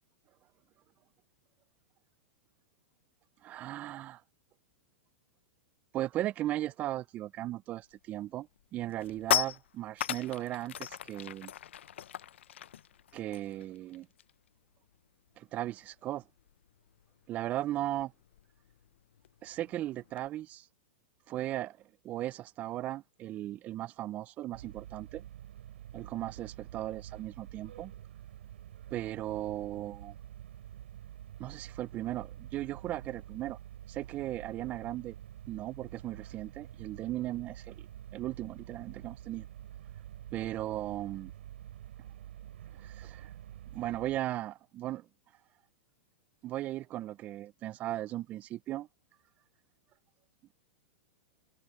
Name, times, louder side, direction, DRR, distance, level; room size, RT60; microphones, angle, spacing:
voice 1, 3.4-4.2 5.9-8.5 8.7-11.5 13.1-14.1 15.4-16.2 17.3-18.1 19.4-20.6 21.3-21.8 22.0-25.2 25.9-27.9 28.9-30.1 31.4-33.6 33.9-35.1 35.5-37.8 38.1-39.5 40.3-41.3 42.8-43.3 43.7-45.1 46.4-48.9, right 14 dB, 25° right, 0.3 m, -37 dB
sound 1, 7.9-8.2 8.6-14.5 14.8-15.0 15.3-20.3, left 11 dB, 90° left, 0.6 m, -38 dB
sound 2, 24.5-44.2, right 11 dB, 80° right, 3.0 m, -48 dB
supercardioid pair, 155°, 6 cm